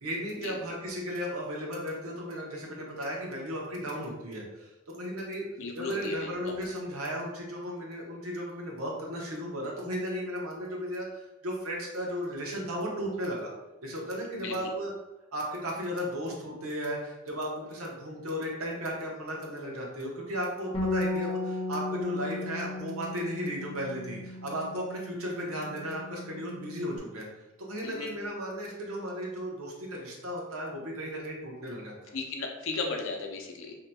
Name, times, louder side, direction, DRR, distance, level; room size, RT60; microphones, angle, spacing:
voice 1, 0.0-5.5 5.7-13.5 13.8-14.9 15.3-27.3 27.6-32.1, equal, 90° right, -2 dB, 0.9 m, -35 dB
voice 2, 5.6-6.6 14.3-14.7 27.8-28.1 32.1-33.8, left 3 dB, 70° left, 2 dB, 0.5 m, -35 dB
Bass guitar, 20.7-27.0, left 2 dB, 25° left, 0.6 m, -36 dB
2.8 x 2.2 x 4.0 m, 1.0 s
head